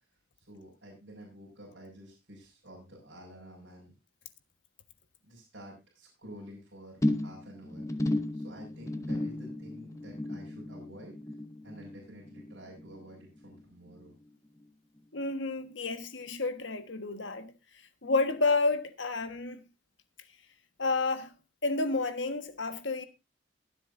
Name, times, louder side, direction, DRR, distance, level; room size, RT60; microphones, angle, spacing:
voice 1, 0.5-3.9 5.2-11.1 11.6-14.1, equal, 65° right, 5.7 m, -50 dB
sound 1, 7.0-13.6 13.9-14.3 14.6-14.7, left 1 dB, 15° left, 0.9 m, -35 dB
Drum, 9.1-11.0, left 1 dB, 50° left, 3.7 m, -52 dB
voice 2, 15.1-17.5 18.0-19.6 20.8-21.3 21.6-23.0, left 3 dB, 75° left, 1.4 m, -30 dB
22.5 x 7.8 x 2.6 m
head